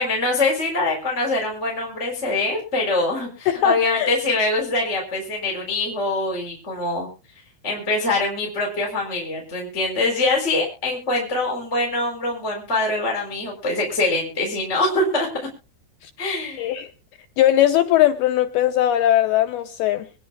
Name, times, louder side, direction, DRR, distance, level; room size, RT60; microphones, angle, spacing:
voice 1, 0.0-7.1 7.6-15.3 16.2-16.7, left 2 dB, 15° left, -2 dB, 3.9 m, -24 dB
voice 2, 3.5-4.1 16.0-16.1 16.6-16.9 17.4-20.1, left 12 dB, 85° left, 6 dB, 2.2 m, -19 dB
25.0 x 10.5 x 2.5 m, 0.35 s
omnidirectional pair, 5.4 m